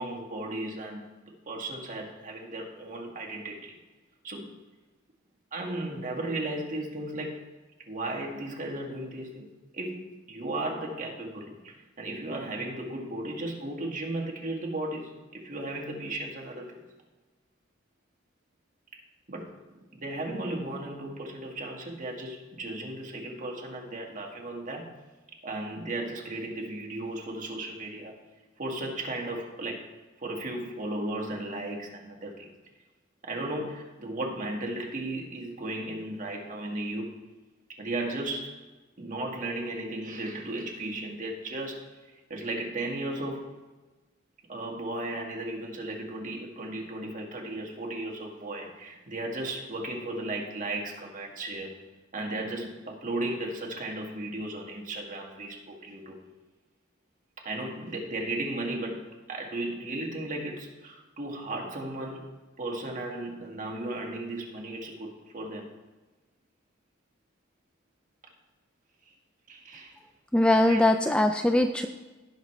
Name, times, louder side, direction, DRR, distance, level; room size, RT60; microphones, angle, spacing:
voice 1, 0.0-3.8 4.2-4.5 5.5-7.4 7.9-16.8 19.3-19.6 19.9-24.9 25.4-28.1 28.6-29.9 30.2-32.5 33.2-37.3 37.8-38.6 39.0-41.9 42.3-43.5 44.5-51.8 52.1-56.2 57.4-62.3 62.6-65.7 69.5-70.0 70.6-71.4, right 1 dB, 40° right, 0 dB, 1.7 m, -35 dB
voice 2, 70.3-71.9, left 1 dB, 5° left, 6 dB, 0.3 m, -21 dB
17.0 x 6.0 x 3.2 m, 1.2 s
head